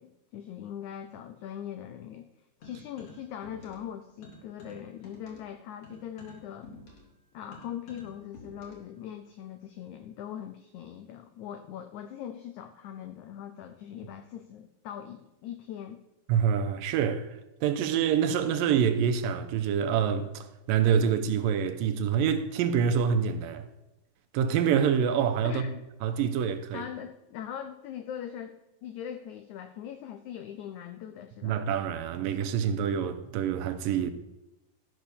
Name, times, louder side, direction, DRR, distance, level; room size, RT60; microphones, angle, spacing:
voice 1, 0.0-2.2 2.6-6.7 7.3-16.0 25.4-25.8 26.7-31.6, left 9 dB, 85° left, 1.6 m, -41 dB
sound 1, 2.6-3.9 4.2-8.9, left 2 dB, 40° left, 3.0 m, -50 dB
voice 2, 16.3-23.7 24.3-25.7 26.0-26.8 31.4-34.1, right 7 dB, 80° right, 2.3 m, -26 dB
13.0 x 6.0 x 6.8 m
omnidirectional pair, 4.2 m